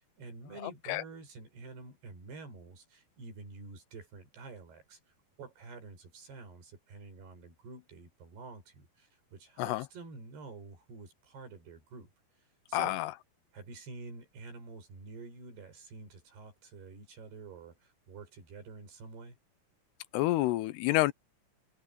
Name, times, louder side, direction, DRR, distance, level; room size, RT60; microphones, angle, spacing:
voice 1, 0.0-5.0 5.4-12.1 12.4-13.0 13.5-19.4, right 4 dB, 75° right, 7.8 m, -48 dB
voice 2, 0.6-1.0 9.6-9.8 12.7-13.1 20.1-21.1, left 17 dB, 85° left, 2.8 m, -29 dB
omnidirectional pair, 4.7 m